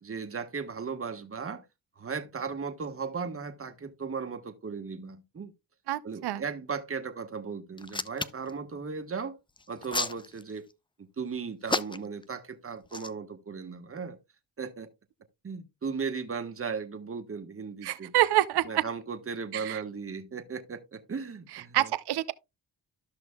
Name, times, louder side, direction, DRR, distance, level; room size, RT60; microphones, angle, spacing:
voice 1, 0.0-1.6 2.0-5.5 6.0-9.4 9.7-10.7 11.0-14.2 14.6-14.9 15.4-18.1 18.6-21.9, right 5 dB, 35° right, 1.5 m, -36 dB
voice 2, 5.9-6.4 17.8-18.8 19.5-19.8 21.7-22.3, right 14 dB, 80° right, 0.7 m, -27 dB
Hands, 7.8-8.5 9.6-10.7 11.7-12.2 12.9-13.1, left 3 dB, 15° left, 0.5 m, -31 dB
13.5 x 6.0 x 2.3 m
cardioid pair, 85°, 39 cm